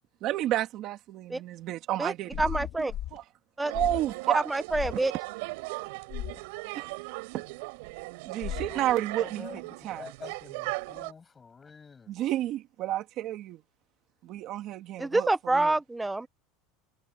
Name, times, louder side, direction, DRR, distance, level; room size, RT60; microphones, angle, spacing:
voice 1, 0.2-3.2 3.7-4.4 6.7-6.9 7.3-7.4 8.3-9.4 9.8-10.1 12.1-13.6 14.2-15.7, right 13 dB, 35° right, 2.3 m, -31 dB
sound 1, 2.3-3.2 3.7-4.1 4.7-5.0 6.1-6.4 8.4-8.8, left 12 dB, 35° left, 1.2 m, -36 dB
voice 2, 2.4-2.9 3.6-3.7 4.3-5.1 15.0-16.3, right 2 dB, 5° right, 0.4 m, -27 dB
sound 2, 3.6-11.1, right 26 dB, 60° right, 6.4 m, -38 dB
voice 3, 8.7-12.1, left 5 dB, 15° left, 6.5 m, -47 dB
supercardioid pair, 175°, 0 cm